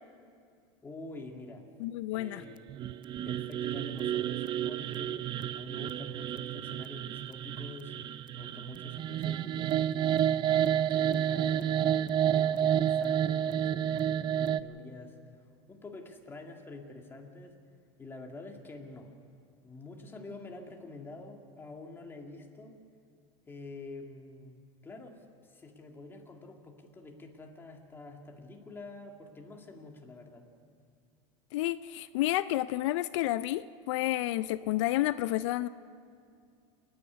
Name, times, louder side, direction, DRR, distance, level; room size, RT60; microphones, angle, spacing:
voice 1, 0.8-1.7 2.1-2.7 3.2-5.3 5.5-7.9 8.4-10.3 10.9-11.9 12.3-17.6 18.0-19.1 19.6-22.8 23.5-30.5, left 2 dB, 15° left, 2 dB, 2.2 m, -47 dB
voice 2, 1.8-2.4 31.5-35.7, left 16 dB, 80° left, 14 dB, 0.5 m, -30 dB
sound 1, 2.7-14.6, right 10 dB, 30° right, 0.4 m, -30 dB
28.5 x 9.7 x 9.7 m, 2.3 s
supercardioid pair, 140°, 15 cm